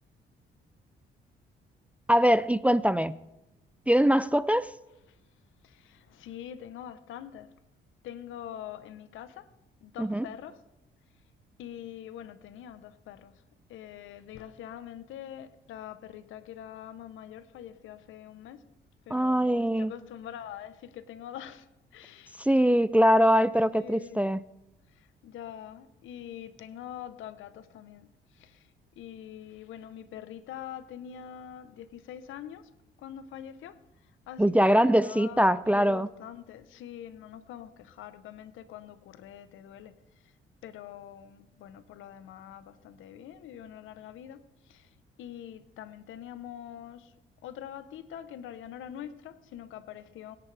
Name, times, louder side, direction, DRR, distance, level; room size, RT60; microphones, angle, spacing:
voice 1, 2.1-3.1 3.9-4.7 10.0-10.2 19.1-19.9 22.4-24.4 34.4-36.1, equal, 5° right, 16 dB, 0.3 m, -22 dB
voice 2, 5.6-7.5 8.0-9.5 9.8-10.6 11.6-13.4 13.7-18.6 19.1-21.7 21.9-22.4 23.7-24.2 24.9-28.7 29.0-32.7 33.0-33.8 34.3-40.0 40.6-44.9 45.2-47.1 47.4-50.4, left 10 dB, 85° left, 13 dB, 0.9 m, -44 dB
21.5 x 10.5 x 3.4 m, 0.95 s
cardioid pair, 90°, 20 cm